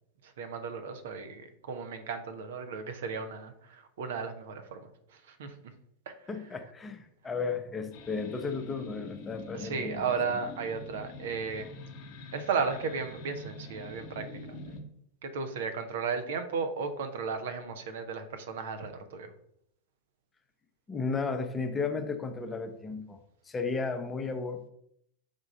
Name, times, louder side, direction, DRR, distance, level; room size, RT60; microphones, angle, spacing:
voice 1, 0.2-4.9 5.3-5.5 6.1-6.2 9.5-11.7 12.3-14.6 15.2-19.3, right 5 dB, 55° right, 9 dB, 0.7 m, -34 dB
voice 2, 6.3-10.0 20.9-23.2 23.5-24.7, left 4 dB, 15° left, 6 dB, 0.7 m, -34 dB
sound 1, 7.9-14.8, left 3 dB, 45° left, 0.9 m, -45 dB
5.3 x 3.5 x 5.3 m, 0.72 s
figure-of-eight pair, 90°, 0 cm